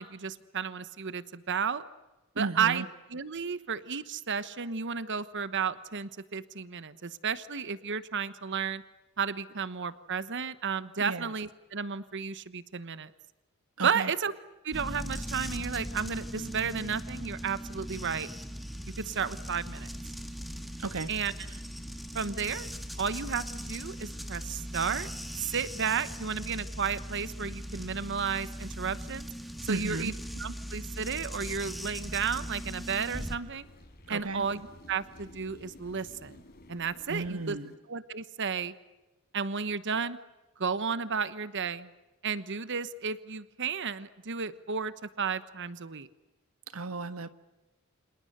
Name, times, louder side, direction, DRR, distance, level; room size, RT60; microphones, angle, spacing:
voice 1, 0.0-1.8 2.4-2.8 3.1-8.8 9.2-13.1 13.8-14.3 14.6-18.3 19.0-19.9 21.1-21.3 22.1-22.7 23.0-25.1 25.4-29.3 29.6-30.1 30.4-33.7 34.1-36.4 36.7-37.6 37.9-38.7 39.3-40.2 40.6-41.9 42.2-46.1, right 6 dB, 60° right, 14 dB, 1.1 m, -33 dB
voice 2, 2.3-2.9 11.0-11.3 13.8-14.1 20.8-21.1 29.7-30.1 34.1-34.5 37.1-37.7 46.7-47.3, right 3 dB, 85° right, 12 dB, 1.4 m, -34 dB
sound 1, 14.7-33.4, equal, ahead, 1.7 m, -39 dB
sound 2, 31.5-37.7, left 1 dB, 50° left, 4.9 m, -53 dB
29.5 x 27.0 x 6.7 m, 1.1 s
head